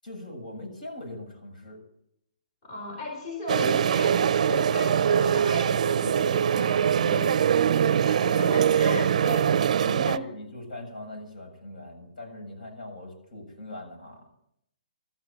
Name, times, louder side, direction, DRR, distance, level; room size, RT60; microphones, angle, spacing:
voice 1, 0.0-1.8 7.9-8.2 8.8-9.0 9.8-14.2, left 1 dB, 70° left, 1 dB, 7.4 m, -41 dB
voice 2, 2.6-9.5 9.9-10.3, left 2 dB, 35° left, 2 dB, 4.0 m, -36 dB
Museum Cafe, 3.5-10.2, right 8 dB, 55° right, 0.5 m, -23 dB
13.0 x 10.5 x 9.0 m, 0.77 s
hypercardioid pair, 165°, 5 cm